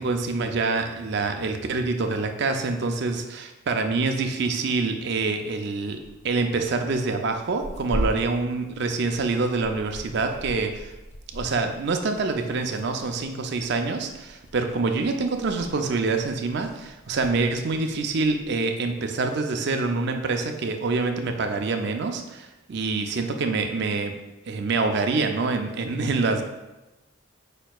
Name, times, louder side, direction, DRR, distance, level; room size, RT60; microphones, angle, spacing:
voice 1, 0.0-6.0 6.2-10.9 11.3-24.1 24.5-26.4, right 3 dB, 55° right, 5 dB, 0.4 m, -26 dB
Tearing, 5.9-18.5, equal, 30° left, 0.6 m, -39 dB
5.1 x 4.3 x 2.3 m, 1.0 s
head